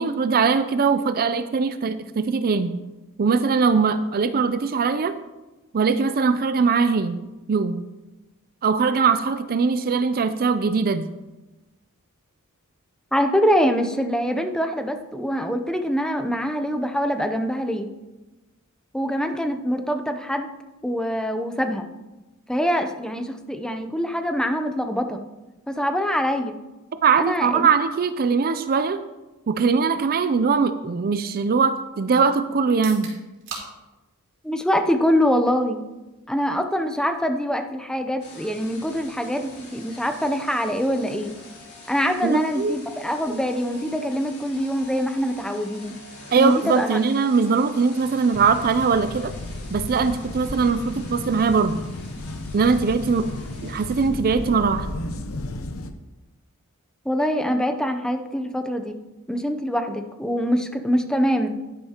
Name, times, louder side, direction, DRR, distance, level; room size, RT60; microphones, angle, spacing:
voice 1, 0.0-2.7 3.2-5.1 5.7-7.2 7.5-7.8 8.6-11.1 27.0-29.0 29.5-33.1 42.2-42.8 46.3-49.3 49.7-51.8 52.5-53.3 53.6-54.9, right 5 dB, 45° right, 11 dB, 0.4 m, -21 dB
voice 2, 13.1-17.9 18.9-20.5 20.8-21.9 22.5-25.2 25.7-26.5 27.2-27.7 34.4-35.8 36.3-41.4 41.9-46.0 46.4-47.0 57.0-59.0 59.3-61.5, equal, 5° left, 6 dB, 0.6 m, -24 dB
sound 1, 32.7-46.5, right 4 dB, 60° right, 3.4 m, -49 dB
sound 2, 38.2-54.1, left 2 dB, 85° left, 3.8 m, -45 dB
sound 3, 48.3-55.9, left 1 dB, 65° left, 0.8 m, -34 dB
11.0 x 10.5 x 2.9 m, 1.1 s
head